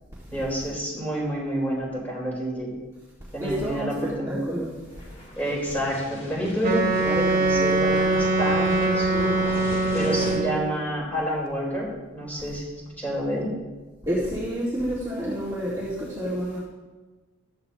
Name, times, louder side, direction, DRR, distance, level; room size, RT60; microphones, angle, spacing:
voice 1, 0.3-2.7 3.3-4.4 5.4-9.3 9.9-13.5, equal, 10° left, -5 dB, 4.0 m, -29 dB
voice 2, 3.4-4.7 14.0-16.6, equal, 15° right, -8 dB, 1.9 m, -29 dB
sound 1, 4.9-10.4, left 1 dB, 30° left, 2.2 m, -37 dB
Wind instrument woodwind instrument, 6.6-10.8, right 2 dB, 45° right, 1.9 m, -23 dB
14.5 x 12.5 x 2.9 m, 1.2 s
head